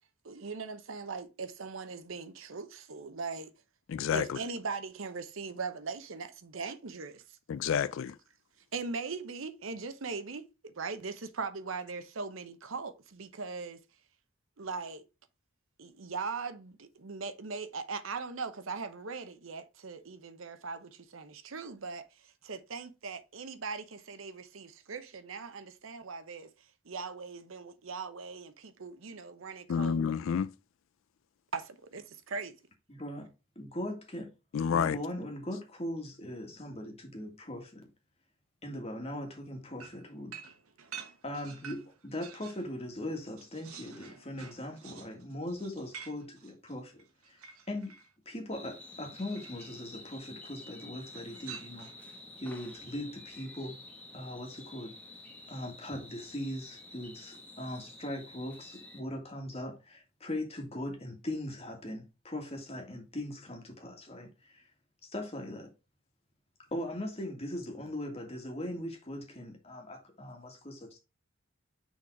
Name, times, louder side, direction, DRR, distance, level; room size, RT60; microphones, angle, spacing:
voice 1, 0.2-3.5 4.1-7.2 8.7-13.8 14.6-15.1 15.8-26.5 26.8-30.0 31.5-32.6, right 4 dB, 70° right, 0.8 m, -40 dB
voice 2, 3.9-4.4 7.5-8.1 29.7-30.5 34.5-35.0, left 7 dB, 65° left, 0.3 m, -29 dB
voice 3, 32.9-33.3 33.6-34.3 34.6-37.9 38.6-40.4 41.2-47.4 47.7-48.0 48.3-51.9 52.4-53.8 54.1-54.9 55.5-64.6 65.0-65.7 66.7-71.0, left 1 dB, 30° left, 1.8 m, -40 dB
sound 1, 39.8-42.7 43.0-48.1 49.1-49.7 51.1-52.1, right 7 dB, 90° right, 1.1 m, -49 dB
sound 2, 48.5-59.0, left 2 dB, 5° left, 1.1 m, -50 dB
6.2 x 4.0 x 4.6 m
head